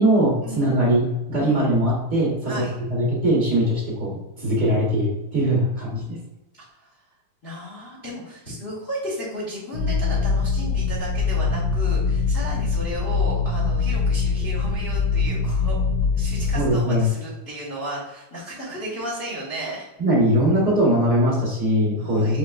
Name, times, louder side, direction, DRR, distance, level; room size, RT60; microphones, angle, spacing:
voice 1, 0.0-2.6 2.9-6.2 16.5-17.1 20.0-22.4, equal, 80° right, -6 dB, 0.8 m, -21 dB
voice 2, 7.4-15.8 16.2-19.9 22.0-22.4, equal, 55° left, -7 dB, 0.6 m, -34 dB
sound 1, 9.7-16.7, left 4 dB, 90° left, 1.5 m, -23 dB
6.4 x 3.2 x 2.4 m, 0.98 s
omnidirectional pair, 3.9 m